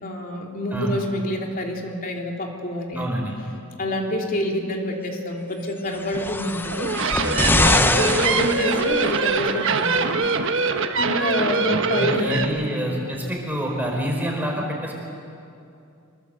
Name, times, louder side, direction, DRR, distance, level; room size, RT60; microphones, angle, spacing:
voice 1, 0.0-3.3 3.8-6.9 7.9-10.3 11.0-12.4 12.7-12.9, left 1 dB, 40° left, 1 dB, 3.0 m, -27 dB
voice 2, 2.9-3.4 7.7-8.0 11.7-15.0, equal, 10° right, -1 dB, 4.7 m, -27 dB
sound 1, 5.9-9.3 10.2-10.3, left 2 dB, 10° left, 0.6 m, -23 dB
sound 2, 6.7-12.4, right 4 dB, 60° right, 1.4 m, -23 dB
25.0 x 22.0 x 7.9 m, 2.6 s
head